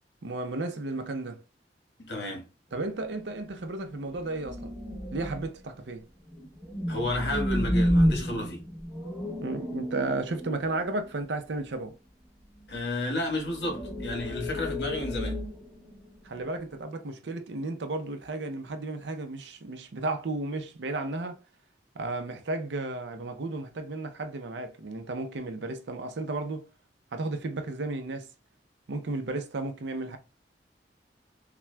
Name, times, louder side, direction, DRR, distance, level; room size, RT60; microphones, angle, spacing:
voice 1, 0.2-1.4 2.7-4.8 5.1-6.0 9.4-12.0 16.2-21.4 21.9-26.7 27.1-28.3 28.9-30.2, right 2 dB, 80° right, 0.6 m, -33 dB
voice 2, 2.0-2.5 6.9-8.6 12.7-15.4, left 1 dB, 70° left, 1.3 m, -31 dB
sound 1, 2.8-3.0 3.3-3.4 4.1-5.6 6.3-11.1 12.6-12.9 13.3-16.3, equal, 5° left, 0.7 m, -31 dB
5.8 x 2.3 x 2.2 m
head